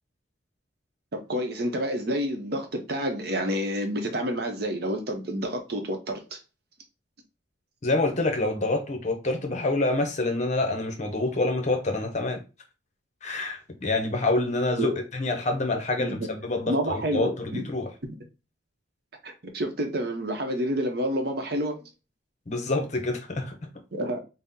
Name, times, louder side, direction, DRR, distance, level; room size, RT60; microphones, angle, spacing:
voice 1, 1.1-6.4 14.8-14.9 16.0-16.2 16.7-17.7 19.2-21.8 23.9-24.2, equal, 55° right, 0.7 m, -29 dB
voice 2, 7.8-12.4 13.2-17.9 22.5-23.6, left 2 dB, 35° left, 0.7 m, -27 dB
4.1 x 2.0 x 3.6 m
head